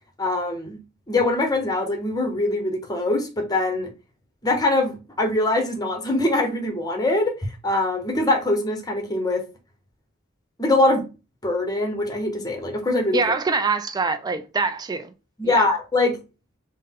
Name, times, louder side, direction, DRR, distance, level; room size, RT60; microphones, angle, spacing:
voice 1, 0.2-0.8 1.1-3.9 4.4-9.4 10.6-11.1 11.4-13.2 15.4-16.2, left 2 dB, 20° left, 0.9 m, -23 dB
voice 2, 13.1-15.1 15.4-15.7, right 4 dB, 20° right, 0.3 m, -24 dB
3.8 x 2.1 x 3.6 m
head